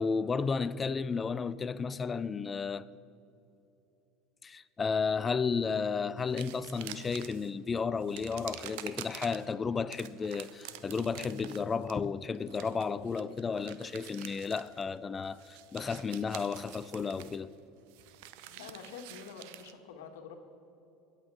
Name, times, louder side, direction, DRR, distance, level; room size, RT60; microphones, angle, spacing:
voice 1, 0.0-2.9 4.4-17.5, left 5 dB, 25° left, 0.5 m, -33 dB
sound 1, 6.2-7.5 8.0-9.5 9.9-15.0 15.2-19.7, right 13 dB, 75° right, 0.7 m, -48 dB
voice 2, 18.5-20.3, left 6 dB, 80° left, 1.6 m, -47 dB
22.5 x 8.4 x 4.8 m
hypercardioid pair, 90°, 0 cm